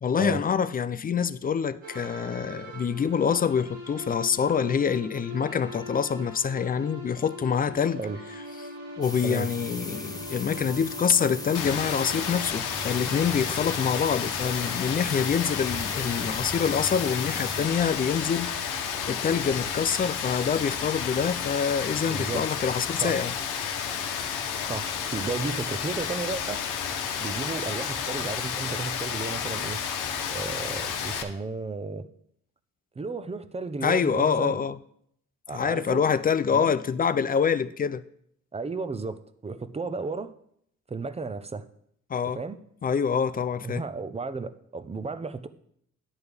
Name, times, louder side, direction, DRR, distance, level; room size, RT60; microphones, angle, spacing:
voice 1, 0.0-8.0 9.0-23.3 33.8-34.8 35.5-38.0 42.1-42.4 42.8-43.8, left 7 dB, 30° left, 0.4 m, -26 dB
sound 1, 1.8-13.6, left 1 dB, 85° right, 2.1 m, -42 dB
sound 2, 9.0-17.7, left 2 dB, 10° left, 1.1 m, -38 dB
Rain, 11.5-31.2, left 7 dB, 90° left, 1.0 m, -31 dB
voice 2, 22.1-22.4 23.0-23.2 24.6-29.8 30.3-32.1 33.0-34.6 35.5-36.0 36.5-36.7 38.5-40.3 40.9-41.7 42.3-42.6 43.6-45.5, right 4 dB, 20° right, 0.7 m, -34 dB
11.0 x 7.8 x 3.5 m
cardioid pair, 90°, 30 cm